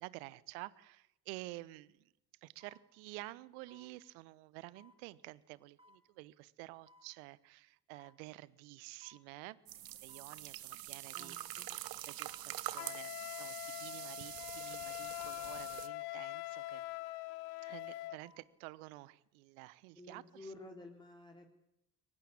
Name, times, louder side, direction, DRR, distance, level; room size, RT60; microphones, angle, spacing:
voice 1, 0.0-2.1 2.4-9.6 9.9-11.6 12.1-16.8 17.6-20.5, right 20 dB, 65° right, 21 dB, 1.1 m, -51 dB
sound 1, 1.5-1.6 2.6-2.9 3.7-3.9 4.8-5.0 5.8-6.0 6.9-7.1 7.9-8.2 9.0-9.3 10.1-10.3 11.2-11.4 12.2-12.5 13.3-13.6 14.4-14.7 15.5-15.7 16.5-16.8 18.0-18.5 18.9-19.0, left 1 dB, 10° right, 5.7 m, -64 dB
sound 2, 9.7-15.9, right 14 dB, 50° right, 1.4 m, -45 dB
voice 2, 11.1-11.7 19.9-21.5, left 2 dB, 10° left, 2 dB, 3.6 m, -52 dB
Wind instrument woodwind instrument, 12.7-18.2, left 19 dB, 70° left, 1.0 m, -43 dB
23.0 x 20.0 x 8.8 m, 0.82 s
figure-of-eight pair, 50°, 46 cm